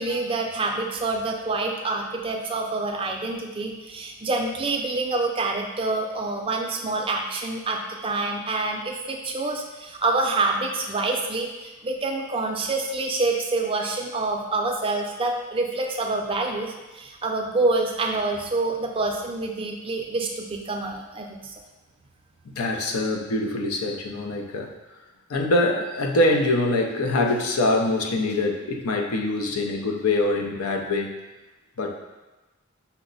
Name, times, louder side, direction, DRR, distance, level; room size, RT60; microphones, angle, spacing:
voice 1, 0.0-21.5, right 3 dB, 25° right, 1 dB, 0.4 m, -27 dB
voice 2, 22.5-24.7 25.3-31.1 31.8-32.0, left 2 dB, 85° left, 1 dB, 0.6 m, -24 dB
5.6 x 2.1 x 3.9 m, 1.1 s
head